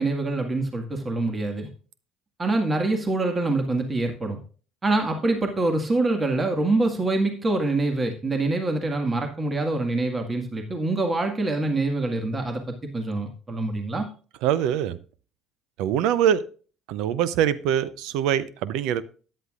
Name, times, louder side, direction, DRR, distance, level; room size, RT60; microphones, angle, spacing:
voice 1, 0.0-1.7 2.4-4.4 4.8-14.1, right 2 dB, 25° right, 1.8 m, -25 dB
voice 2, 14.4-15.0 15.8-16.4 16.9-19.0, right 10 dB, 75° right, 0.6 m, -23 dB
13.0 x 9.9 x 2.5 m
hypercardioid pair, 75°, 0 cm